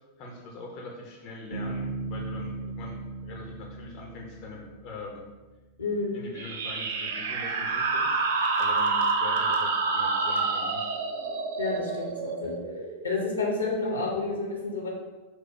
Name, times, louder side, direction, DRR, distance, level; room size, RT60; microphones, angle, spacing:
voice 1, 0.2-5.3 6.1-8.2 8.6-10.9, left 3 dB, 40° left, -1 dB, 0.7 m, -42 dB
Bass guitar, 1.5-5.2, right 3 dB, 90° right, 1.0 m, -37 dB
voice 2, 5.8-6.2 11.6-12.6 13.0-14.9, left 3 dB, 75° left, -1 dB, 1.0 m, -29 dB
sound 1, 6.3-13.6, right 4 dB, 60° right, 0.4 m, -28 dB
4.4 x 2.3 x 4.5 m, 1.2 s
figure-of-eight pair, 90°, 0 cm